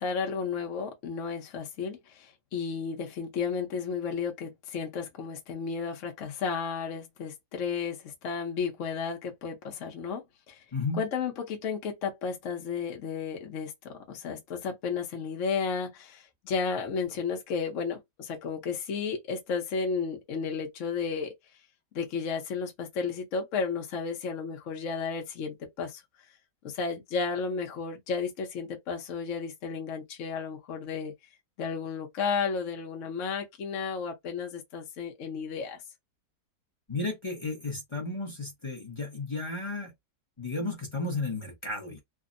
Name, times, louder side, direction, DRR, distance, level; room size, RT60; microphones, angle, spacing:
voice 1, 0.0-10.6 11.0-21.3 21.9-26.0 26.6-31.1 31.6-35.8, left 5 dB, 60° left, 1.0 m, -33 dB
voice 2, 10.7-11.0 36.9-39.9 40.4-42.0, left 3 dB, 30° left, 0.5 m, -33 dB
3.4 x 2.0 x 2.4 m
omnidirectional pair, 1.7 m